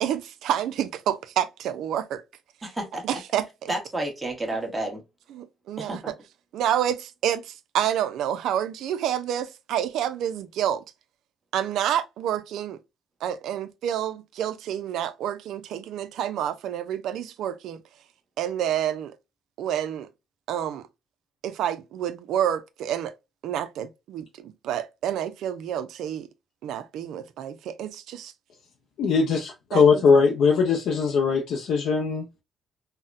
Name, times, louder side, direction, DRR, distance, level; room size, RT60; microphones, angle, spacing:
voice 1, 0.0-2.2 3.0-3.7 5.3-6.0 6.5-10.8 11.5-12.8 13.2-17.8 18.4-19.2 19.6-20.1 20.5-20.8 21.4-23.1 23.4-26.3 26.6-28.3 29.7-30.2, right 10 dB, 80° right, 0.4 m, -28 dB
voice 2, 2.6-3.2 3.7-5.0 5.8-6.1, right 1 dB, 20° right, 1.2 m, -31 dB
voice 3, 29.0-32.3, left 5 dB, 80° left, 0.5 m, -20 dB
3.9 x 2.1 x 2.3 m
cardioid pair, 90°, 0 cm